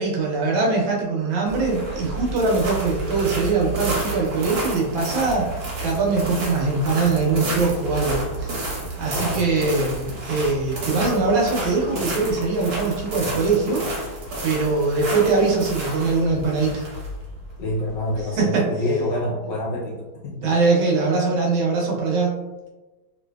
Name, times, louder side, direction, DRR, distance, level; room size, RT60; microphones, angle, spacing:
voice 1, 0.0-5.5 5.8-13.8 14.4-16.8 18.4-18.7 20.4-22.4, right 3 dB, 75° right, -2 dB, 1.4 m, -22 dB
sound 1, 1.5-18.4, right 2 dB, 60° right, 1.2 m, -30 dB
voice 2, 9.1-9.5 17.6-20.5, left 1 dB, 70° left, -2 dB, 1.2 m, -27 dB
3.2 x 2.8 x 2.2 m, 1.1 s
omnidirectional pair, 2.3 m